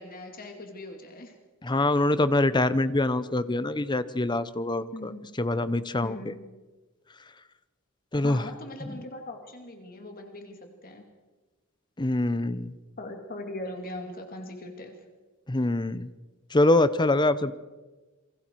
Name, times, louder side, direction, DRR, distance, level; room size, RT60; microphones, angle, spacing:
voice 1, 0.0-1.4 4.9-5.3 6.0-6.4 8.2-11.0 13.0-14.9, left 1 dB, 40° left, 4 dB, 2.5 m, -40 dB
voice 2, 1.6-5.1 5.4-6.2 8.1-8.4 8.9-9.0 12.0-12.7 15.5-16.1 16.5-17.5, left 2 dB, 20° left, 14 dB, 0.8 m, -24 dB
28.0 x 23.0 x 4.6 m, 1.3 s
head